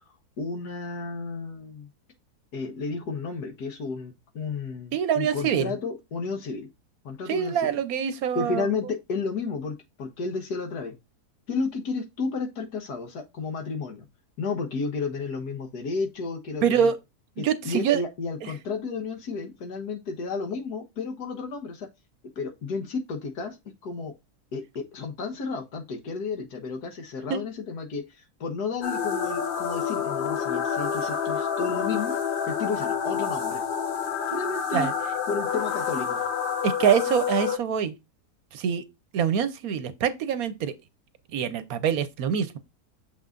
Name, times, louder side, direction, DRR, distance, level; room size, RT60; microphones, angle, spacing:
voice 1, 0.4-1.9 2.5-6.7 7.0-7.8 8.3-11.0 11.5-14.1 14.4-16.9 17.4-21.9 22.4-23.6 23.8-24.1 24.5-32.1 32.5-33.6 34.3-34.9 35.3-36.2, left 4 dB, 75° left, 1.7 m, -32 dB
voice 2, 4.9-5.7 7.3-8.7 16.6-17.0 17.4-18.0 18.4-18.5 27.3-27.4 34.7-34.9 36.6-37.9 38.5-38.8 39.1-40.7 41.3-42.6, right 8 dB, 70° right, 1.1 m, -25 dB
sound 1, 28.8-37.6, left 7 dB, 55° left, 0.6 m, -28 dB
6.7 x 5.7 x 2.5 m
omnidirectional pair, 1.7 m